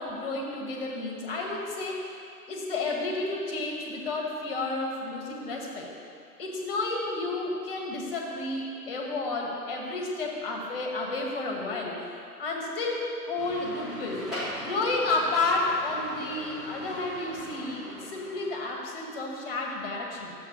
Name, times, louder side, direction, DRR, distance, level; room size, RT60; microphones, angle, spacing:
voice 1, 0.0-2.2 2.5-5.9 6.4-14.3 14.6-20.3, left 2 dB, 35° left, 0 dB, 1.5 m, -31 dB
sound 1, 13.4-18.7, equal, ahead, 0.5 m, -40 dB
11.5 x 7.3 x 3.0 m, 2.5 s
figure-of-eight pair, 130°, 47 cm